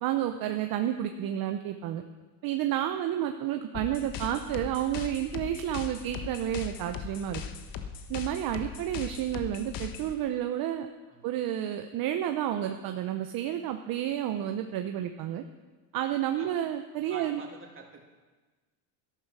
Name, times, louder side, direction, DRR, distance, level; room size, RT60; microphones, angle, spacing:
voice 1, 0.0-2.0 2.4-7.4 8.1-10.9 11.2-15.4 15.9-17.4, right 11 dB, 55° right, 6 dB, 0.9 m, -30 dB
sound 1, 3.7-10.1, left 7 dB, 50° left, 1.3 m, -39 dB
voice 2, 16.9-18.0, right 4 dB, 30° right, 1 dB, 2.7 m, -47 dB
13.5 x 11.5 x 6.2 m, 1.3 s
cardioid pair, 130°, 43 cm